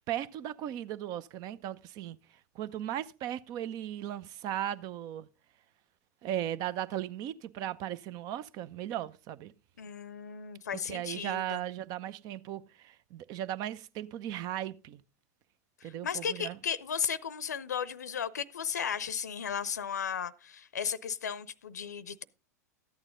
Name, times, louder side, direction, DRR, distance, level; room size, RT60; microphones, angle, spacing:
voice 1, 0.1-2.2 2.5-5.3 6.2-9.5 10.7-15.0 15.8-16.6, right 12 dB, 45° right, 0.7 m, -37 dB
voice 2, 9.8-11.6 15.8-22.2, left 7 dB, 85° left, 0.6 m, -35 dB
13.5 x 8.9 x 3.8 m
hypercardioid pair, 95°, 9 cm